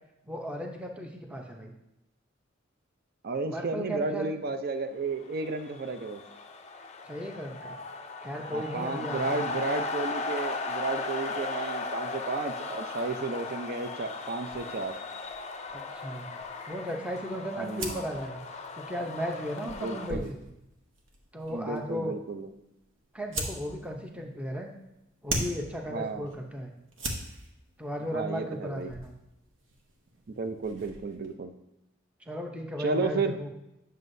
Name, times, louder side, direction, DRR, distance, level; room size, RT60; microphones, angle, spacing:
voice 1, 0.3-1.7 3.5-4.3 7.0-7.8 8.2-9.6 15.7-16.3 16.6-18.4 18.7-20.5 21.3-22.1 23.1-24.7 25.2-26.7 27.8-29.1 32.2-33.5, equal, 5° right, 2 dB, 0.7 m, -36 dB
voice 2, 3.2-6.2 8.5-14.9 17.6-18.0 19.8-20.3 21.5-22.5 25.9-26.3 28.1-28.9 30.3-31.5 32.8-33.4, right 3 dB, 50° right, 8 dB, 0.6 m, -33 dB
sound 1, 5.3-20.1, left 3 dB, 35° left, 0.5 m, -37 dB
sound 2, 14.5-31.3, right 2 dB, 70° right, 1.1 m, -42 dB
9.3 x 6.6 x 2.7 m, 0.88 s
head